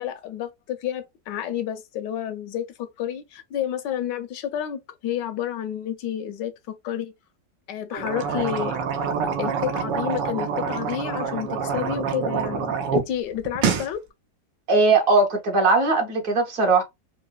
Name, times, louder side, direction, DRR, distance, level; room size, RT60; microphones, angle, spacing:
voice 1, 0.0-6.5 6.8-7.1 7.7-8.8 9.4-14.0, left 10 dB, 80° left, 1.2 m, -30 dB
sound 1, 8.0-13.0 13.4-13.9, right 6 dB, 90° right, 1.4 m, -26 dB
voice 2, 14.7-16.8, right 3 dB, 55° right, 1.3 m, -19 dB
4.6 x 2.1 x 2.2 m
omnidirectional pair, 1.9 m